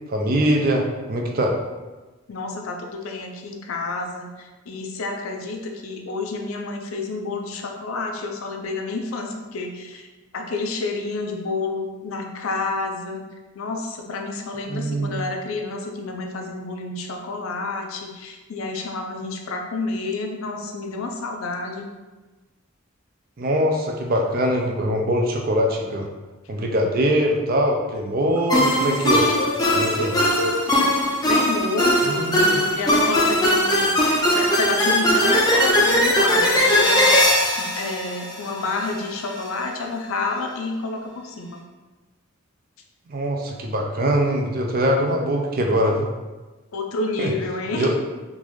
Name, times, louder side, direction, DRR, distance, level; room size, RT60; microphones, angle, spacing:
voice 1, 0.1-1.5 14.7-15.2 23.4-26.1 26.5-29.3 29.7-30.1 32.0-32.6 43.1-46.1 47.2-47.3 47.8-47.9, equal, 45° right, 1 dB, 0.4 m, -22 dB
voice 2, 2.3-10.1 10.3-13.2 13.5-21.9 29.1-30.7 31.2-33.9 34.3-41.6 46.7-48.0, left 3 dB, 75° left, 2 dB, 0.5 m, -29 dB
sound 1, 28.5-38.9, left 1 dB, 20° left, 0.5 m, -19 dB
3.7 x 2.5 x 3.1 m, 1.2 s
head